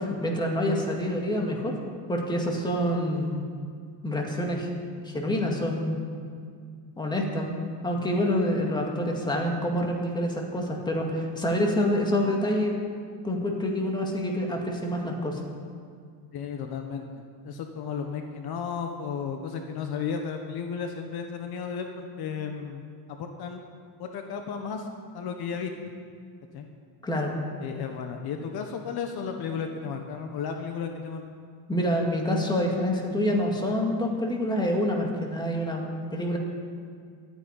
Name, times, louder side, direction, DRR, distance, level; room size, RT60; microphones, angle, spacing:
voice 1, 0.0-1.7 2.1-3.4 4.0-4.7 5.0-6.0 7.0-7.6 7.8-12.7 13.2-15.4 27.0-27.4 31.7-35.8 36.1-36.4, left 1 dB, 10° left, 0 dB, 2.1 m, -27 dB
voice 2, 16.3-23.6 24.0-24.9 25.1-25.7 26.5-26.7 27.6-31.2, left 6 dB, 55° left, 4 dB, 1.3 m, -34 dB
13.0 x 9.4 x 9.9 m, 2.1 s
cardioid pair, 165°, 44 cm